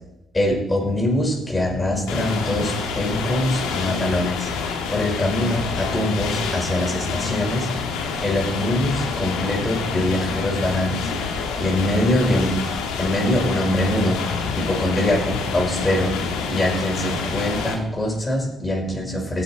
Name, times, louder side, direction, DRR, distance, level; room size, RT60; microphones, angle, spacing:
voice 1, 0.3-4.5 4.9-7.7 8.2-12.5 13.0-14.2 14.6-16.2 16.5-19.4, left 1 dB, 20° left, 0 dB, 5.3 m, -23 dB
sound 1, 2.1-17.8, left 5 dB, 80° left, 1.8 m, -27 dB
17.0 x 8.1 x 4.5 m, 0.88 s
hypercardioid pair, 50°, 0 cm